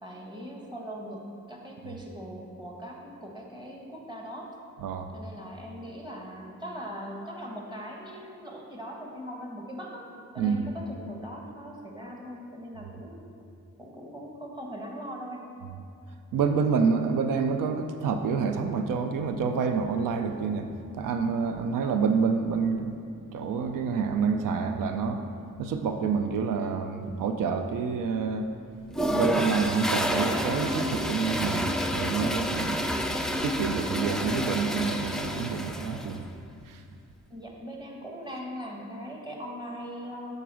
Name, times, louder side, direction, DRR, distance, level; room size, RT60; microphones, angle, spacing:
voice 1, 0.0-4.5 5.1-10.1 10.3-13.3 13.8-15.4 37.3-40.3, equal, 15° right, -1 dB, 1.4 m, -40 dB
voice 2, 16.3-20.7 20.9-23.0 23.3-25.2 25.6-28.5 28.9-36.2 36.7-36.8, right 5 dB, 90° right, 7 dB, 0.5 m, -28 dB
Toilet flush, 28.9-36.2, equal, ahead, 0.4 m, -29 dB
6.8 x 4.0 x 6.1 m, 2.5 s
cardioid pair, 75°, 32 cm